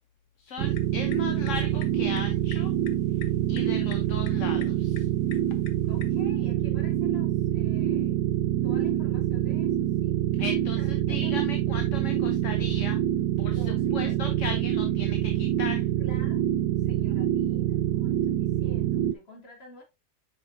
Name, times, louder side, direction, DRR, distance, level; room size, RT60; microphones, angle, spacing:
voice 1, 0.4-2.7 3.5-5.1 10.4-13.0 13.4-13.6 13.9-15.9, left 5 dB, 55° left, 1.2 m, -37 dB
sound 1, 0.5-6.2, left 8 dB, 90° left, 1.6 m, -48 dB
sound 2, 0.6-19.1, right 12 dB, 80° right, 1.1 m, -26 dB
voice 2, 5.9-8.3 8.6-10.3 10.8-11.8 13.5-14.2 16.0-16.4 16.8-19.8, left 2 dB, 40° left, 2.9 m, -50 dB
7.6 x 5.7 x 2.6 m
omnidirectional pair, 1.7 m